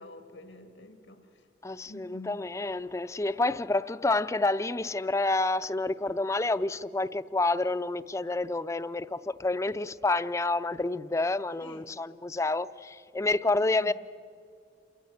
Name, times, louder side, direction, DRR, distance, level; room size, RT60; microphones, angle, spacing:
voice 1, 0.0-1.5 1.9-2.5 11.6-11.9 13.6-13.9, left 2 dB, 85° left, 1.9 m, -48 dB
voice 2, 1.6-13.9, left 2 dB, 15° left, 0.4 m, -29 dB
28.5 x 15.0 x 8.2 m
head